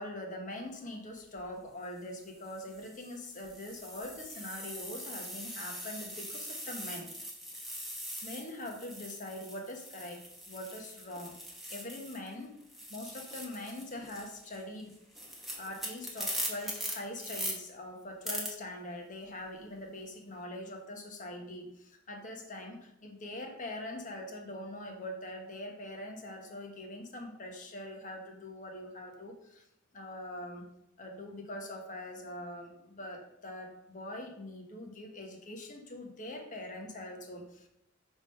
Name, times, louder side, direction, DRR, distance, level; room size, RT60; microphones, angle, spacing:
voice 1, 0.0-7.1 8.2-11.3 11.7-12.5 12.9-14.9 15.6-29.6 29.9-30.7 31.0-37.7, left 1 dB, 40° left, 2 dB, 1.2 m, -43 dB
sound 1, 1.2-1.4 2.2-12.3 12.6-17.5 18.2-18.5, equal, ahead, 1.3 m, -42 dB
6.1 x 3.7 x 5.4 m, 0.80 s
head